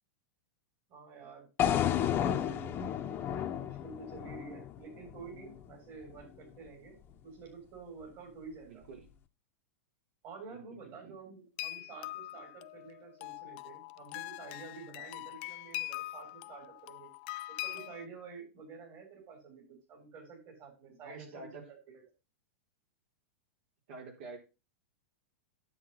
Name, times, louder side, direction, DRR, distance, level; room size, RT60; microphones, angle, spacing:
voice 1, 0.9-2.9 3.6-7.0 7.2-8.8 10.2-17.1 17.6-22.0, right 5 dB, 45° right, 1 dB, 7.0 m, -50 dB
sound 1, 1.6-5.7, left 10 dB, 30° left, 1.1 m, -32 dB
voice 2, 8.6-9.1 10.5-11.1 21.0-21.7 23.9-24.4, right 3 dB, 65° right, 2 dB, 4.1 m, -48 dB
sound 2, 11.6-18.1, left 20 dB, 50° left, 0.4 m, -42 dB
9.9 x 8.2 x 4.2 m, 0.30 s
hypercardioid pair, 125°, 7 cm